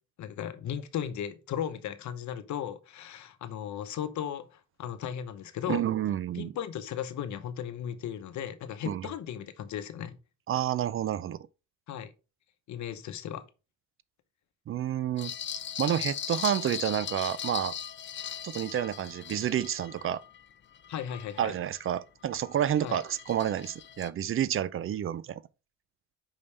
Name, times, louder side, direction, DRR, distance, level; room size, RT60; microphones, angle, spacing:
voice 1, 0.2-5.8 6.3-10.2 11.9-12.1 12.7-13.5 20.9-21.5 22.8-23.0, left 9 dB, 70° left, 0.9 m, -36 dB
voice 2, 5.7-6.5 8.9-9.1 10.5-11.4 14.7-15.3 15.8-17.7 18.4-20.2 21.4-25.4, right 10 dB, 45° right, 0.4 m, -29 dB
sound 1, 15.2-21.9 22.3-24.1, left 9 dB, 40° left, 0.5 m, -39 dB
5.5 x 5.3 x 3.3 m
cardioid pair, 90°, 30 cm